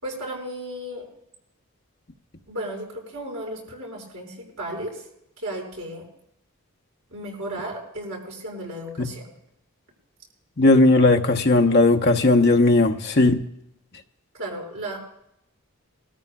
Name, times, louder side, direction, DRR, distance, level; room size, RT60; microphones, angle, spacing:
voice 1, 0.0-1.1 2.5-5.1 5.4-6.1 7.1-9.3 14.4-15.0, right 1 dB, 65° right, -3 dB, 5.9 m, -34 dB
voice 2, 10.6-13.4, left 2 dB, 50° left, 4 dB, 1.0 m, -17 dB
21.0 x 14.0 x 2.4 m, 0.77 s
head